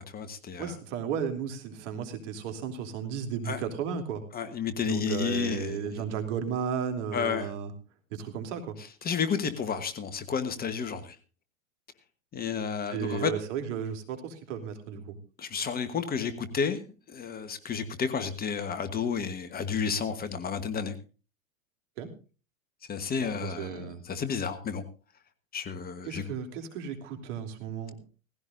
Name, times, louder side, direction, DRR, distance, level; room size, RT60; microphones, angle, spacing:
voice 1, 0.0-0.7 3.4-3.6 4.3-6.0 7.1-7.5 9.0-11.1 12.3-13.3 15.4-16.8 17.1-20.9 22.9-24.8 25.5-26.2, left 6 dB, 20° left, 11 dB, 1.3 m, -31 dB
voice 2, 0.6-4.2 4.8-7.7 8.1-8.8 12.9-15.2 22.0-22.1 23.2-24.0 26.0-27.9, right 7 dB, 60° right, 6 dB, 3.2 m, -34 dB
18.0 x 16.0 x 2.6 m, 0.33 s
hypercardioid pair, 115°, 41 cm